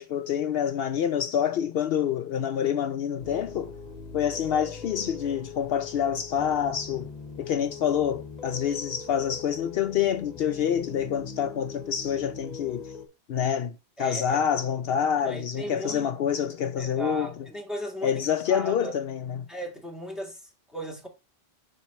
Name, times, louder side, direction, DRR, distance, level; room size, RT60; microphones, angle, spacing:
voice 1, 0.0-3.7 4.1-7.1 7.4-12.9 13.3-17.3 18.0-19.5, left 8 dB, 70° left, 0.8 m, -27 dB
sound 1, 3.2-13.1, left 5 dB, 40° left, 1.2 m, -41 dB
voice 2, 14.0-14.4 15.2-16.1 16.8-18.9 19.5-21.1, right 1 dB, ahead, 1.6 m, -37 dB
5.5 x 4.5 x 4.2 m
omnidirectional pair, 1.1 m